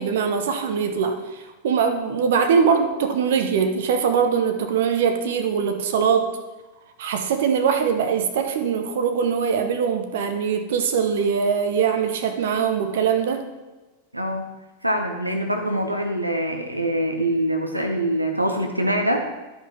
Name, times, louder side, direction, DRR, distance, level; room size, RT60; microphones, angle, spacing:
voice 1, 0.0-6.3 7.0-13.4, right 6 dB, 55° right, 7 dB, 0.9 m, -22 dB
voice 2, 14.1-14.5 14.8-19.3, right 1 dB, 85° right, 4 dB, 0.8 m, -24 dB
11.5 x 5.5 x 4.3 m, 1.1 s
figure-of-eight pair, 90°, 0 cm